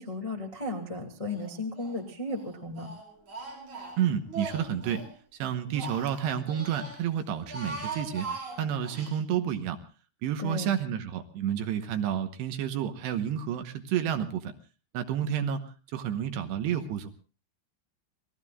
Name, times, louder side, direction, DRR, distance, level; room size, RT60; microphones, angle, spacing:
voice 1, 0.0-2.9 10.4-10.7, left 2 dB, 40° left, 0 dB, 0.4 m, -35 dB
Speech, 1.3-2.0 2.3-5.1 5.5-7.0 7.4-9.1, right 3 dB, 40° right, 6.7 m, -40 dB
voice 2, 4.0-5.0 5.4-8.3 8.6-9.8 10.2-14.5 14.9-15.6 15.9-17.1, right 9 dB, 75° right, 7 dB, 3.0 m, -30 dB
30.0 x 19.5 x 2.4 m, 0.35 s
omnidirectional pair, 5.4 m